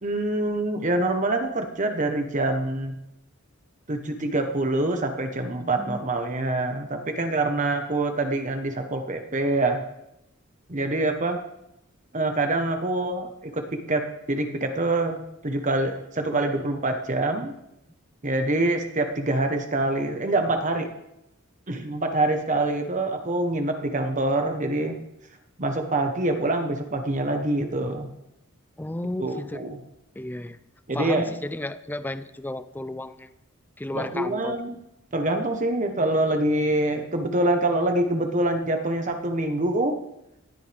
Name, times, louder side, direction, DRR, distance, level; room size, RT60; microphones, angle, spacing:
voice 1, 0.0-3.0 3.9-9.8 10.7-11.4 12.1-17.5 18.2-20.9 21.7-24.9 25.6-28.1 29.2-29.8 30.9-31.3 33.9-34.8 35.1-40.0, right 2 dB, 35° right, 5 dB, 1.2 m, -25 dB
voice 2, 5.6-6.0 28.8-29.6 30.2-30.6 30.9-33.3 33.8-34.6, left 1 dB, 10° left, 12 dB, 0.5 m, -33 dB
18.5 x 13.0 x 3.5 m, 0.85 s
head